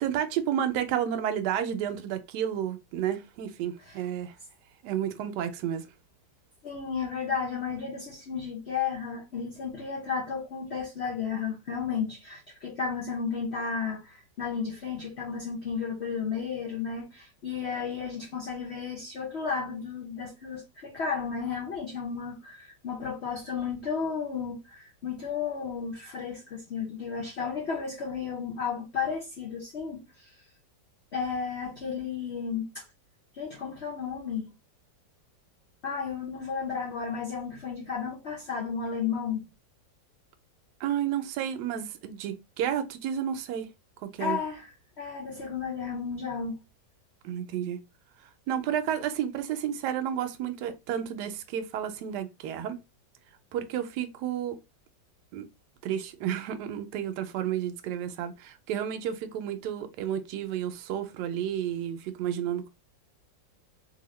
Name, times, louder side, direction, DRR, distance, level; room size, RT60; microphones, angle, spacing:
voice 1, 0.0-4.3 4.8-5.9 40.8-43.7 44.0-44.4 47.2-47.8 48.5-52.8 53.5-54.6 55.3-55.4 55.8-62.7, right 10 dB, 75° right, 1.1 m, -31 dB
voice 2, 6.6-30.3 31.1-32.8 33.3-34.5 35.8-39.4 44.2-44.7 45.0-46.6, left 6 dB, 80° left, 0.6 m, -33 dB
2.7 x 2.6 x 3.0 m
omnidirectional pair, 1.9 m